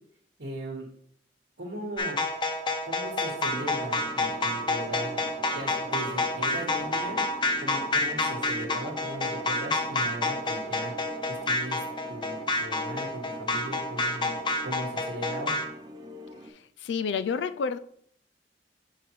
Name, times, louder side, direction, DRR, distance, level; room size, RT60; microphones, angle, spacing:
voice 1, 0.4-0.9 1.6-2.2 2.8-5.2 5.5-7.2 7.6-10.9 11.3-11.8 12.1-14.4 14.6-15.6, right 1 dB, 80° right, 1.4 m, -38 dB
sound 1, 2.0-15.6, left 2 dB, 25° left, 0.6 m, -29 dB
sound 2, 3.5-16.5, equal, 25° right, 0.5 m, -42 dB
voice 2, 16.4-17.8, left 5 dB, 80° left, 0.3 m, -30 dB
6.8 x 4.6 x 3.1 m
head